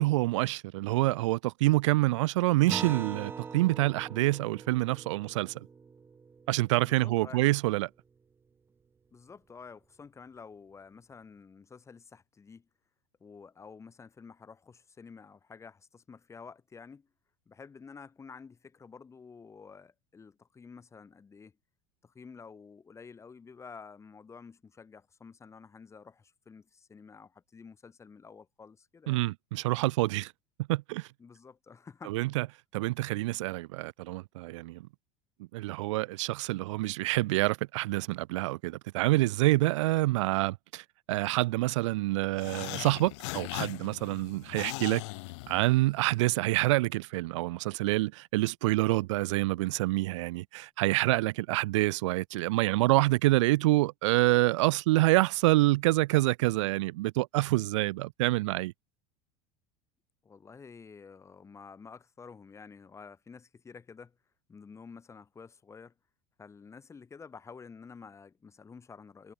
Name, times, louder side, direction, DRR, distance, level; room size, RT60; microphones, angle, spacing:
voice 1, 0.0-5.7 6.5-7.9 29.1-30.3 30.7-31.1 32.1-32.5 32.7-34.9 35.5-45.0 45.5-58.7, right 19 dB, 90° right, 0.5 m, -27 dB
Acoustic guitar, 2.7-7.6, right 5 dB, 15° right, 0.5 m, -43 dB
voice 2, 6.8-7.5 9.1-12.7 13.2-17.1 17.5-21.5 22.0-29.2 31.2-32.2 60.2-64.2 64.5-65.9 66.4-69.3, left 5 dB, 20° left, 3.8 m, -50 dB
sound 1, 42.4-46.1, left 25 dB, 75° left, 2.7 m, -39 dB
supercardioid pair, 130°, 15 cm